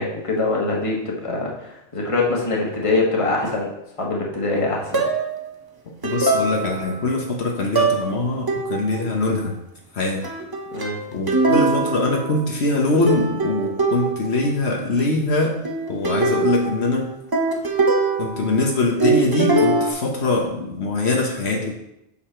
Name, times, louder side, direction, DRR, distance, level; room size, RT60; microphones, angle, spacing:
voice 1, 0.0-3.7 4.0-5.1 10.7-11.0, left 3 dB, 30° left, -2 dB, 1.4 m, -23 dB
sound 1, 4.9-5.4 6.0-7.0 7.8-8.1 8.5-9.0 10.2-12.8 13.1-14.5 15.6-18.7 19.0-19.9, right 2 dB, 25° right, 0.6 m, -22 dB
voice 2, 6.0-9.6 9.9-10.2 11.1-15.5 15.9-17.1 18.2-21.7, left 2 dB, 70° left, 0 dB, 1.3 m, -22 dB
6.6 x 5.6 x 4.4 m, 0.85 s
omnidirectional pair, 1.2 m